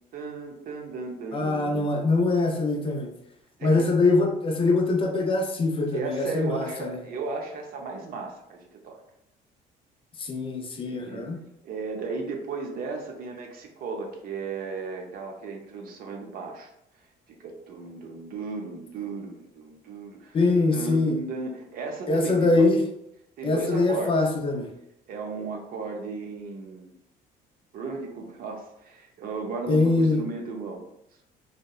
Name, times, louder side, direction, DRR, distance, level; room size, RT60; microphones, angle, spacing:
voice 1, 0.1-1.9 3.6-3.9 5.9-9.0 10.9-11.3 11.6-16.7 17.3-22.7 23.4-24.2 25.1-27.0 27.7-30.8, right 4 dB, 60° right, 2 dB, 0.5 m, -35 dB
voice 2, 1.3-3.1 3.6-7.0 10.2-11.4 20.3-21.2 22.1-22.8 23.4-24.7 29.7-30.2, left 3 dB, 30° left, 2 dB, 0.4 m, -23 dB
2.8 x 2.1 x 2.3 m, 0.82 s
cardioid pair, 110°, 17 cm